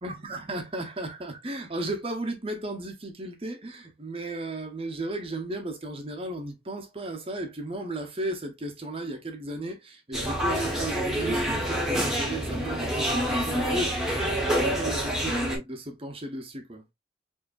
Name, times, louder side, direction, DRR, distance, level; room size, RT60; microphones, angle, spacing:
voice 1, 0.0-16.8, right 1 dB, 30° right, 0.8 m, -35 dB
sound 1, 10.1-15.6, equal, 5° right, 1.3 m, -27 dB
4.9 x 2.8 x 2.5 m
head